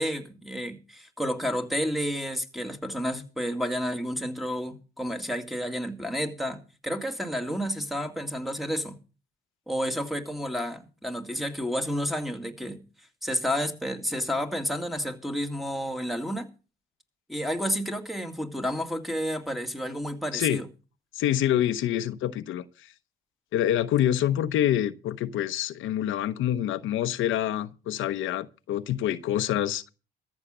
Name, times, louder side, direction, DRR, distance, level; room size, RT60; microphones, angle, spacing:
voice 1, 0.0-9.0 9.7-12.8 13.2-16.5 17.3-20.7, equal, ahead, 2.2 m, -30 dB
voice 2, 21.1-22.9 23.5-29.9, left 11 dB, 85° left, 0.9 m, -26 dB
14.0 x 7.3 x 6.7 m
cardioid pair, 90°, 20 cm